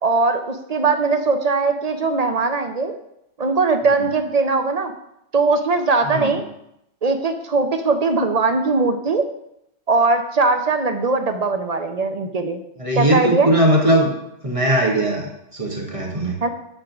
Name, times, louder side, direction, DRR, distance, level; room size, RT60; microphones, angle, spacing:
voice 1, 0.0-2.9 3.4-4.9 5.3-6.4 7.0-9.2 9.9-12.6 12.9-13.5 16.4-16.5, right 3 dB, 45° right, 7 dB, 0.6 m, -20 dB
voice 2, 12.8-14.1 14.4-16.3, right 1 dB, 30° right, -1 dB, 1.6 m, -19 dB
9.0 x 3.7 x 6.0 m, 0.81 s
omnidirectional pair, 1.2 m